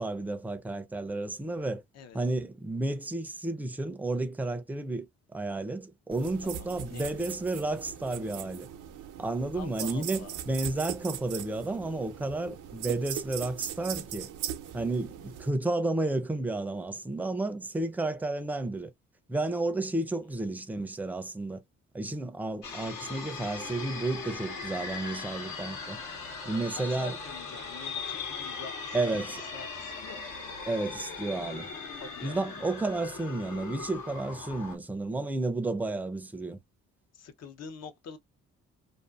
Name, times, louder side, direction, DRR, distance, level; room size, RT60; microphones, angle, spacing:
voice 1, 0.0-1.8 2.1-8.7 9.2-14.3 14.7-18.9 19.3-21.6 21.9-26.0 26.4-27.2 28.9-29.4 30.6-31.7 32.2-36.6, right 2 dB, 5° right, 0.5 m, -32 dB
sound 1, 6.1-15.5, right 10 dB, 85° right, 0.6 m, -40 dB
voice 2, 6.4-7.3 9.5-10.3 26.8-29.2 29.5-30.3 32.0-32.5 37.1-38.2, left 6 dB, 55° left, 0.7 m, -46 dB
sound 2, 22.6-34.8, left 4 dB, 75° left, 1.2 m, -39 dB
2.5 x 2.5 x 2.3 m
cardioid pair, 90°, 30 cm